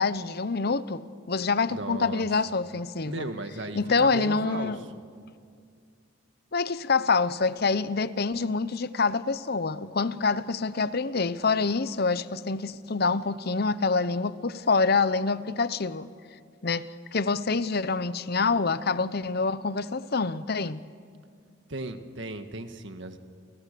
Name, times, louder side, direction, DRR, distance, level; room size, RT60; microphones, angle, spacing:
voice 1, 0.0-3.3 3.7-4.8 6.5-16.1 16.6-16.9 17.1-20.8, left 4 dB, 50° left, 0.8 m, -26 dB
voice 2, 1.7-2.3 3.1-5.0 21.7-23.2, right 2 dB, 60° right, 1.8 m, -36 dB
30.0 x 29.0 x 6.9 m
head